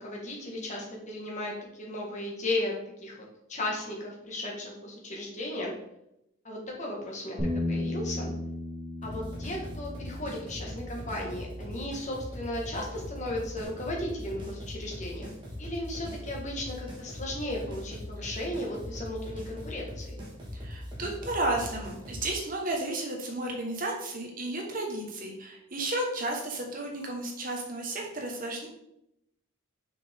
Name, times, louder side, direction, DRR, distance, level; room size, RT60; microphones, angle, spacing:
voice 1, 0.0-3.2 3.5-5.7 6.4-8.3 9.0-15.3 15.6-20.2, left 1 dB, 35° left, -1 dB, 1.6 m, -35 dB
Bass guitar, 7.4-13.6, left 1 dB, ahead, 2.7 m, -37 dB
sound 1, 9.0-22.3, left 1 dB, 20° right, 1.6 m, -40 dB
voice 2, 20.5-28.7, right 2 dB, 40° right, 0 dB, 1.3 m, -33 dB
6.6 x 5.7 x 3.7 m, 0.81 s
head